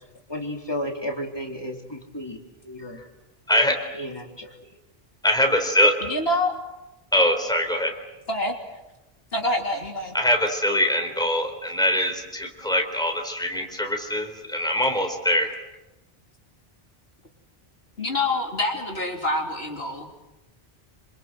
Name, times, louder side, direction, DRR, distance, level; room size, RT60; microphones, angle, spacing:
voice 1, 0.3-2.4 2.7-3.0 4.0-4.5, equal, 25° left, 1 dB, 4.0 m, -32 dB
voice 2, 3.5-3.9 5.2-5.9 7.1-7.9 10.1-15.6, equal, 5° left, 3 dB, 4.0 m, -23 dB
voice 3, 6.0-6.5 8.3-8.6 9.3-10.2 18.0-20.2, left 1 dB, 75° left, 1 dB, 3.6 m, -26 dB
27.5 x 27.0 x 7.8 m, 1.0 s
omnidirectional pair, 1.1 m